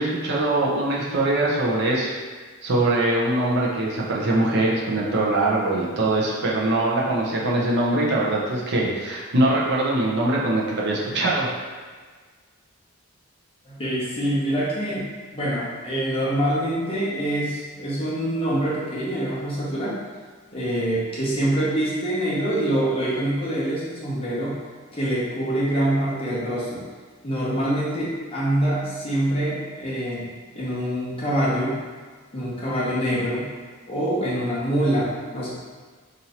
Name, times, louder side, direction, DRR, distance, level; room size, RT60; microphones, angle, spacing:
voice 1, 0.0-2.1 2.6-11.5, right 2 dB, 55° right, -4 dB, 0.6 m, -22 dB
voice 2, 13.7-15.1 15.3-20.0 20.5-24.5 24.9-26.8 27.2-31.8 32.3-33.5 33.9-35.5, right 1 dB, 25° left, -7 dB, 0.8 m, -25 dB
2.9 x 2.6 x 4.2 m, 1.5 s
head